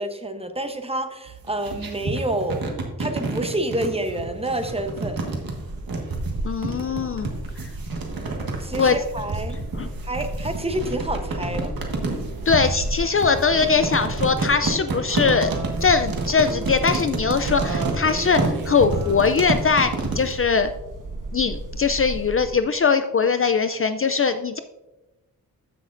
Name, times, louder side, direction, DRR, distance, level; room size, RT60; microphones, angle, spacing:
voice 1, 0.0-2.7 3.0-5.2 8.6-9.5 10.0-11.7, right 1 dB, 15° right, 7 dB, 0.9 m, -28 dB
sound 1, 1.3-20.4, right 3 dB, 80° right, 1.6 m, -29 dB
sound 2, 4.6-22.6, right 2 dB, 65° right, 1.2 m, -34 dB
voice 2, 6.4-7.3 8.8-9.0 9.7-9.9 12.5-15.5 15.8-20.7 21.3-24.6, left 5 dB, 40° left, 9 dB, 0.4 m, -21 dB
14.0 x 6.3 x 2.6 m, 1.0 s
wide cardioid pair, 115°, 35 cm